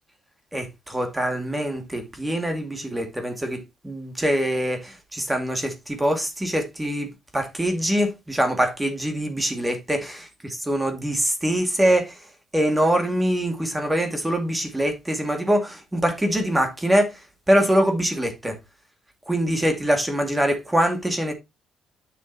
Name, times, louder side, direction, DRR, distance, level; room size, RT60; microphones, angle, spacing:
voice 1, 0.5-12.2 12.5-18.6 19.3-21.3, equal, 10° right, 2.3 m, -24 dB
9.1 x 6.7 x 3.0 m
cardioid pair, 90°, 0 cm